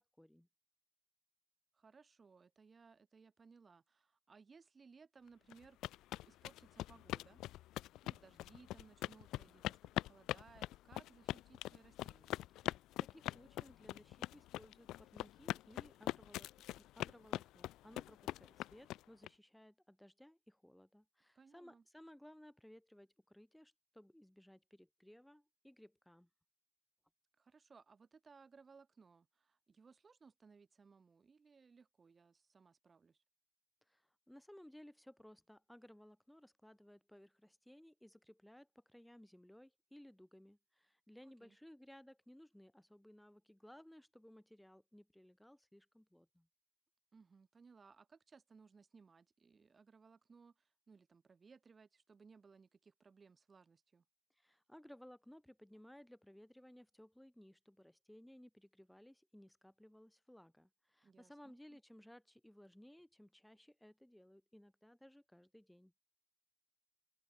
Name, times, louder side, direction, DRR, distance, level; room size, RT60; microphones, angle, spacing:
voice 1, 0.2-0.5 12.6-16.5 16.8-26.3 33.9-46.5 54.4-65.9, equal, 5° left, 3.7 m, -60 dB
voice 2, 1.7-5.8 6.3-7.4 8.0-12.3 21.3-21.8 27.4-33.2 41.2-41.6 47.1-54.0 61.0-61.8, right 5 dB, 35° right, 3.2 m, -63 dB
sound 1, 5.5-19.3, left 15 dB, 65° left, 0.4 m, -42 dB
open air
figure-of-eight pair, 40°, 0 cm